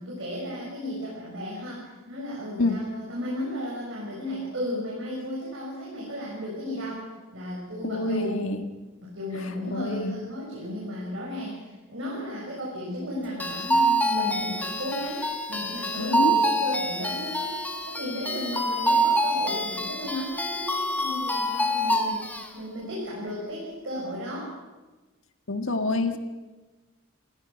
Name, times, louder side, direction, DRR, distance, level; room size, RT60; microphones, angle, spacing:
voice 1, 0.0-7.1 7.3-8.4 9.0-17.6 17.9-22.2 22.5-24.5, equal, 60° right, -4 dB, 6.4 m, -34 dB
voice 2, 7.8-8.6 9.3-10.2 16.0-16.3 25.5-26.2, left 2 dB, 70° left, 6 dB, 1.7 m, -27 dB
sound 1, 13.4-22.5, right 1 dB, 10° left, 1.7 m, -26 dB
29.0 x 16.0 x 6.2 m, 1.2 s
head